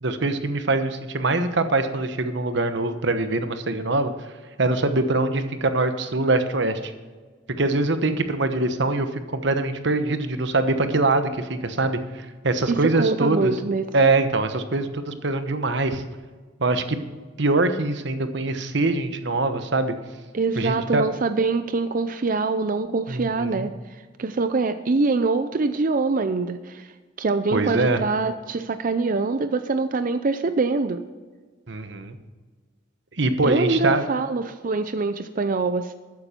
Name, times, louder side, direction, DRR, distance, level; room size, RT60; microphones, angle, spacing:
voice 1, 0.0-4.1 4.6-6.9 7.6-13.5 13.9-16.0 16.6-17.0 17.4-19.9 20.6-21.0 23.1-23.7 27.5-28.0 31.7-32.2 33.2-34.0, right 2 dB, 65° right, 9 dB, 1.1 m, -23 dB
voice 2, 12.7-13.9 20.3-31.0 33.4-36.0, right 3 dB, 45° right, 10 dB, 0.5 m, -24 dB
14.0 x 9.7 x 4.4 m, 1.4 s
head